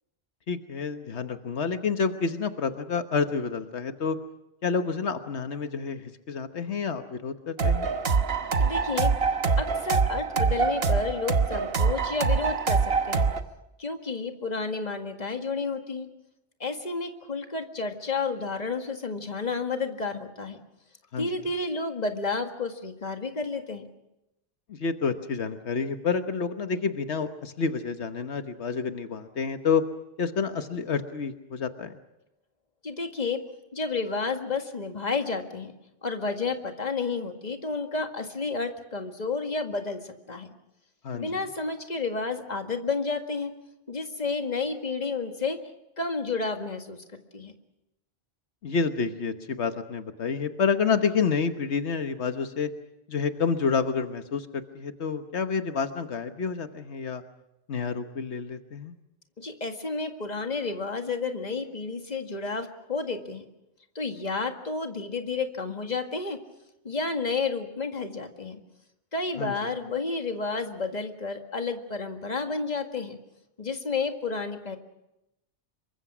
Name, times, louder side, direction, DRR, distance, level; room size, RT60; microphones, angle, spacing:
voice 1, 0.5-4.2 4.6-7.9 21.1-21.3 24.7-29.8 30.2-31.9 41.0-41.4 48.6-52.7 53.1-57.2 57.7-58.9 69.4-69.5, left 5 dB, 85° left, 8 dB, 1.4 m, -29 dB
sound 1, 7.6-13.4, right 5 dB, 65° right, 1.3 m, -24 dB
voice 2, 8.6-9.1 9.6-13.3 13.8-16.1 16.6-20.6 21.2-23.9 32.8-33.4 33.7-35.7 36.0-40.5 41.1-43.5 43.9-45.6 46.0-47.5 59.4-63.4 64.0-66.4 66.8-68.6 69.1-73.2 73.6-74.8, left 4 dB, 40° left, 5 dB, 2.0 m, -31 dB
27.0 x 23.5 x 6.1 m, 0.89 s
omnidirectional pair, 1.1 m